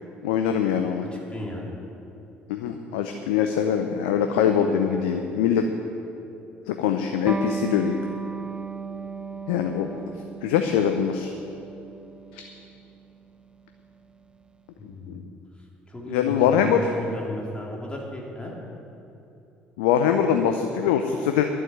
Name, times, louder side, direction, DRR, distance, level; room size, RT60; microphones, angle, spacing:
voice 1, 0.2-1.0 2.5-5.7 6.7-8.0 9.5-10.0 10.4-11.3 12.3-12.4 15.1-15.2 16.1-16.8 19.8-21.5, left 8 dB, 70° left, 6 dB, 0.6 m, -23 dB
voice 2, 1.0-1.7 4.4-5.0 14.8-15.3 15.9-18.5, left 1 dB, 15° left, -2 dB, 3.4 m, -35 dB
Electric guitar, 7.3-14.4, right 4 dB, 15° right, 0.7 m, -36 dB
11.0 x 7.4 x 9.3 m, 2.9 s
figure-of-eight pair, 50°, 6 cm